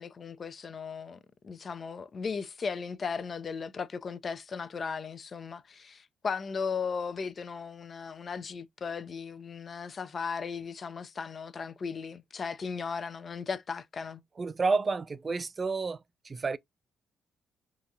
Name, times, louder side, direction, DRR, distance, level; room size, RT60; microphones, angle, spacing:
voice 1, 0.0-14.2, left 5 dB, 45° left, 0.4 m, -36 dB
voice 2, 14.4-16.6, right 4 dB, 35° right, 0.4 m, -30 dB
3.9 x 2.4 x 2.6 m
supercardioid pair, 55°, 0 cm